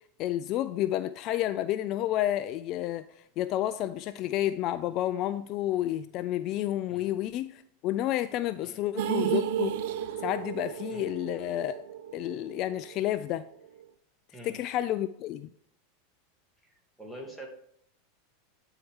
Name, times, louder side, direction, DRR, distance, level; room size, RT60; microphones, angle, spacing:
voice 1, 0.2-3.1 3.4-9.8 10.2-11.8 12.1-13.5 14.4-15.5, left 13 dB, 45° left, 12 dB, 0.3 m, -30 dB
sound 1, 9.0-13.1 13.4-13.5 13.8-13.9, right 10 dB, 65° right, 0.5 m, -33 dB
voice 2, 16.6-17.5, right 1 dB, 5° right, 1 dB, 1.7 m, -45 dB
9.4 x 4.5 x 3.5 m, 0.68 s
hypercardioid pair, 115°, 0 cm